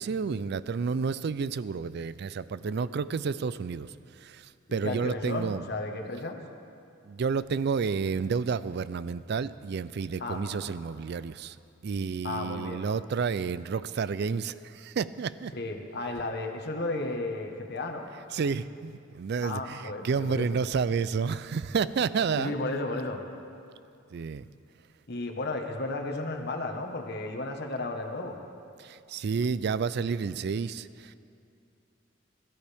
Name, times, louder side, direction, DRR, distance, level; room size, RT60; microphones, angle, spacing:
voice 1, 0.0-5.6 7.0-11.6 11.8-15.5 18.3-22.5 24.1-24.4 28.8-31.2, right 5 dB, 60° right, 16 dB, 0.4 m, -30 dB
voice 2, 4.7-6.4 10.2-10.7 12.2-12.8 15.5-18.1 19.4-20.5 22.3-23.2 25.1-28.4, left 2 dB, 60° left, 3 dB, 1.3 m, -34 dB
22.0 x 13.5 x 3.5 m, 2.5 s
head